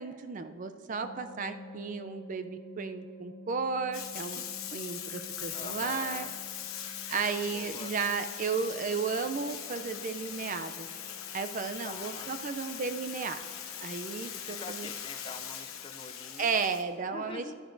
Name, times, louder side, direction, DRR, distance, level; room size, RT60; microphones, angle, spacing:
voice 1, 0.0-4.4 4.7-6.3 7.1-10.9 11.3-13.4 13.8-14.9 16.4-17.5, right 5 dB, 40° right, 9 dB, 0.4 m, -34 dB
sound 1, 1.0-15.9, left 1 dB, 50° left, 0.8 m, -52 dB
Bathtub (filling or washing), 3.9-16.8, left 10 dB, 90° left, 0.9 m, -41 dB
voice 2, 5.5-6.3 7.5-7.9 11.8-12.3 14.3-16.5 17.1-17.5, left 3 dB, 25° left, 9 dB, 0.4 m, -45 dB
sound 2, 9.8-16.7, right 2 dB, 70° right, 1.2 m, -59 dB
13.0 x 11.0 x 2.6 m, 2.1 s
head